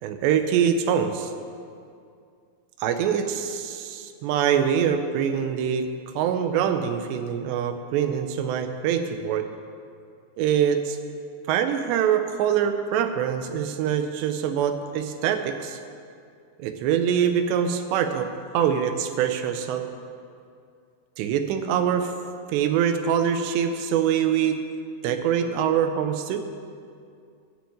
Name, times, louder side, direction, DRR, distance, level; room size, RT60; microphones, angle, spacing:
voice 1, 0.0-1.3 2.8-9.5 10.4-11.0 11.5-15.8 16.6-18.3 18.5-19.9 21.2-22.1 22.5-24.6 25.0-26.4, right 8 dB, 80° right, 8 dB, 2.9 m, -24 dB
11.5 x 6.3 x 8.5 m, 2.4 s
omnidirectional pair, 5.0 m